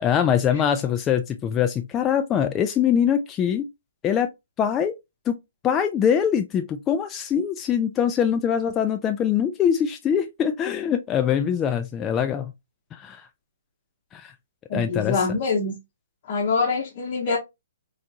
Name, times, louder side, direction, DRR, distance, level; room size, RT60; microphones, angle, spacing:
voice 1, 0.0-3.6 4.0-4.3 4.6-4.9 5.3-5.4 5.6-12.5 12.9-13.3 14.1-14.3 14.7-15.2, left 8 dB, 20° left, 0.3 m, -23 dB
voice 2, 14.7-15.7 16.3-17.4, left 4 dB, 40° left, 0.8 m, -24 dB
4.5 x 2.4 x 2.6 m
figure-of-eight pair, 130°, 0 cm